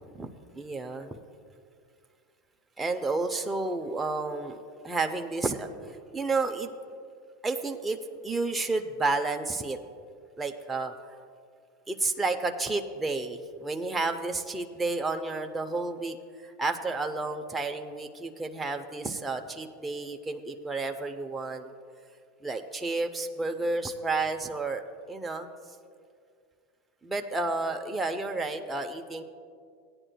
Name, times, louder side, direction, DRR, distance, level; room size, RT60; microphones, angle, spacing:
voice 1, 0.5-1.1 2.8-4.6 4.8-6.7 7.4-8.0 8.2-9.8 10.4-10.9 11.9-16.2 16.4-21.7 22.4-25.5 27.0-29.2, right 3 dB, 10° right, 4 dB, 0.5 m, -31 dB
16.0 x 9.9 x 2.2 m, 2.2 s
supercardioid pair, 115°, 0 cm